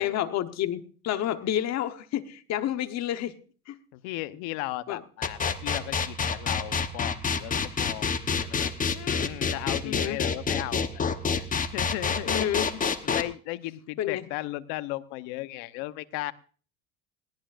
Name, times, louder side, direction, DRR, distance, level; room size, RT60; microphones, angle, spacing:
voice 1, 0.0-3.3 3.7-3.8 4.9-5.0 9.8-10.2 12.2-12.7 14.0-14.3, left 11 dB, 50° left, 10 dB, 1.2 m, -29 dB
voice 2, 3.9-8.1 8.4-11.0 11.4-11.5 11.7-12.5 13.0-16.3, left 17 dB, 70° left, 13 dB, 1.0 m, -36 dB
sound 1, 5.2-13.2, left 5 dB, 25° left, 1.0 m, -27 dB
20.5 x 17.0 x 2.6 m, 0.40 s
supercardioid pair, 115°, 35 cm